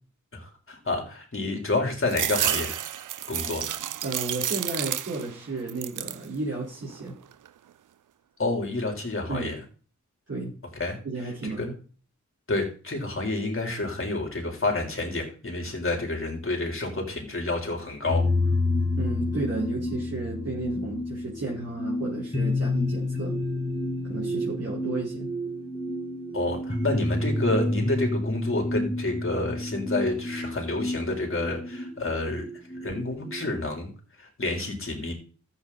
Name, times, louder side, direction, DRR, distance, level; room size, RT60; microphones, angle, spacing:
voice 1, 0.3-2.7 3.3-3.7 8.4-9.6 10.8-11.0 11.6-11.7 12.5-18.2 26.3-32.5 32.8-33.9 34.2-35.1, left 2 dB, 45° left, 2 dB, 3.8 m, -29 dB
sound 1, 2.1-5.4 5.7-6.3 6.8-7.5, right 10 dB, 85° right, 0.5 m, -30 dB
voice 2, 4.0-7.1 9.3-9.5 10.3-10.5 11.0-11.7 19.0-23.3 24.0-25.3, right 3 dB, 55° right, -6 dB, 4.7 m, -33 dB
sound 2, 18.0-33.6, left 2 dB, 20° left, 3.2 m, -29 dB
13.0 x 8.0 x 4.2 m, 0.40 s
wide cardioid pair, 75°, 30 cm